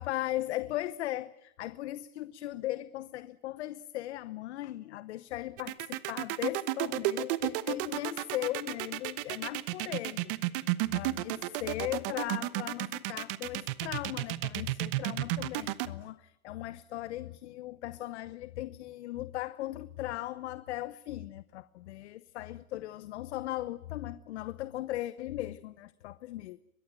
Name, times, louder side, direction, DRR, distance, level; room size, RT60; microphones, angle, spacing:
voice 1, 0.0-10.3 10.9-26.6, left 15 dB, 50° left, 0.9 m, -38 dB
sound 1, 5.6-15.9, right 18 dB, 40° right, 1.2 m, -32 dB
23.5 x 22.0 x 9.0 m
hypercardioid pair, 140°, 43 cm